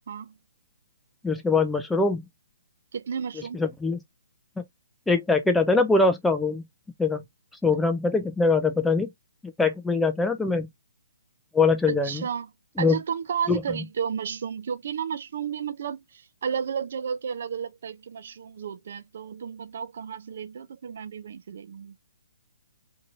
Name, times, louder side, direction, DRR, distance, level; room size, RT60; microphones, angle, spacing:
voice 1, 1.2-2.2 3.5-4.0 5.1-6.6 7.0-7.2 7.6-9.1 9.6-10.7 11.5-12.2 12.8-13.0 13.5-13.6, left 3 dB, 5° left, 0.4 m, -22 dB
voice 2, 2.9-3.6 11.9-12.5 12.8-22.0, right 7 dB, 50° right, 0.5 m, -32 dB
2.7 x 2.6 x 2.9 m
hypercardioid pair, 170°, 0 cm